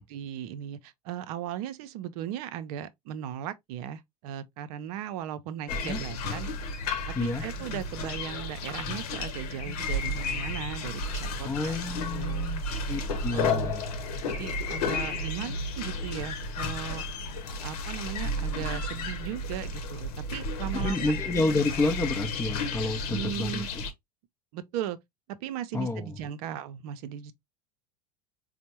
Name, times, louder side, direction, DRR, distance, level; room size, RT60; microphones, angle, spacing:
voice 1, 0.1-6.5 7.1-11.8 12.1-12.5 13.3-13.7 14.3-17.0 17.6-21.1 23.1-23.7 24.5-25.0 25.4-27.3, right 10 dB, 65° right, 0.6 m, -37 dB
sound 1, 5.7-23.9, left 2 dB, 70° left, 0.9 m, -32 dB
voice 2, 11.4-13.8 20.7-23.8 25.7-26.1, left 2 dB, 15° left, 0.5 m, -30 dB
4.3 x 2.1 x 2.9 m
hypercardioid pair, 85°, 21 cm